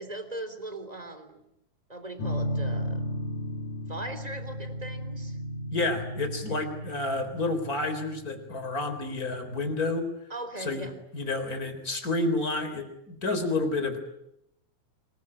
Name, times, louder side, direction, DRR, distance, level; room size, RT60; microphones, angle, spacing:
voice 1, 0.0-1.4 1.9-3.1 3.9-5.4 6.5-6.6 10.3-10.9, right 1 dB, 10° right, 9 dB, 3.3 m, -39 dB
sound 1, 2.2-9.9, equal, 85° left, 4.3 m, -35 dB
voice 2, 5.7-10.1 10.6-10.9 11.1-14.0, left 2 dB, 30° left, 8 dB, 4.3 m, -30 dB
26.0 x 22.5 x 9.9 m, 0.83 s
omnidirectional pair, 3.5 m